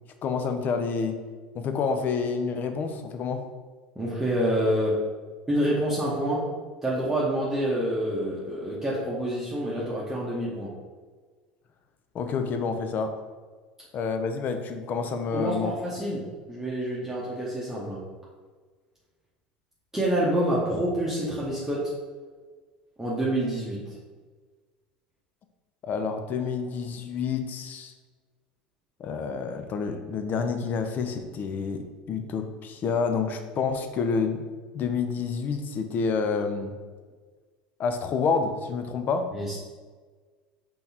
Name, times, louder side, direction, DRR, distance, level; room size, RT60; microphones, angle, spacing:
voice 1, 0.2-1.2 1.5-3.4 12.1-13.1 13.9-15.7 25.8-27.9 29.0-34.4 34.7-36.7 37.8-39.3, left 5 dB, 40° left, 7 dB, 0.5 m, -28 dB
voice 2, 3.9-5.0 5.5-6.5 6.8-10.7 15.3-18.0 19.9-21.9 23.0-24.0 39.3-39.6, right 1 dB, 10° right, -7 dB, 1.0 m, -27 dB
5.2 x 3.5 x 2.9 m, 1.5 s
hypercardioid pair, 75°, 5 cm